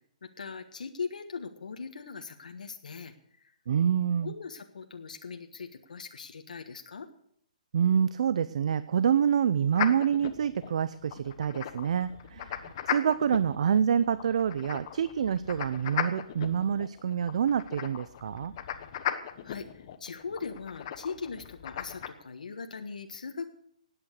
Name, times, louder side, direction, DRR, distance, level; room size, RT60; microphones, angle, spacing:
voice 1, 0.2-3.5 4.2-7.1 19.4-23.5, left 5 dB, 85° left, 5 dB, 1.4 m, -40 dB
voice 2, 3.7-4.3 7.7-18.5, right 8 dB, 55° right, 15 dB, 0.6 m, -27 dB
sound 1, 9.7-22.1, left 10 dB, 35° left, 1.1 m, -38 dB
17.0 x 9.1 x 6.5 m, 0.68 s
hypercardioid pair, 165°, 4 cm